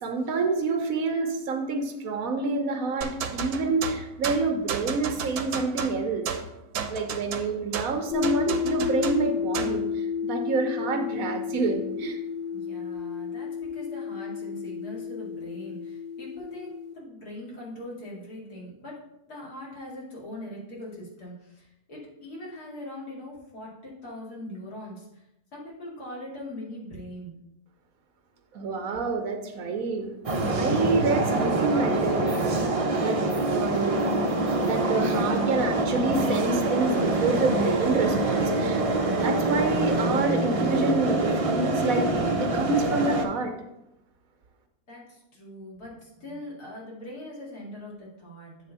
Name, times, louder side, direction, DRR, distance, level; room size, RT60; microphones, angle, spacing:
voice 1, 0.0-6.3 6.9-12.2 28.5-30.2 30.5-32.6 32.9-33.2 33.5-34.1 34.6-38.8 39.2-42.1 42.4-43.5, right 4 dB, 65° right, 5 dB, 1.3 m, -28 dB
sound 1, 3.0-9.8, right 6 dB, 85° right, 1.2 m, -33 dB
sound 2, 8.1-16.9, left 7 dB, 40° left, 0.8 m, -31 dB
voice 2, 12.5-16.7 16.9-19.0 19.3-25.3 25.5-27.4 44.9-48.7, left 1 dB, 80° left, -5 dB, 2.7 m, -41 dB
sound 3, 30.2-43.2, right 2 dB, 40° right, 0.5 m, -25 dB
8.6 x 3.5 x 5.5 m, 0.87 s
omnidirectional pair, 1.6 m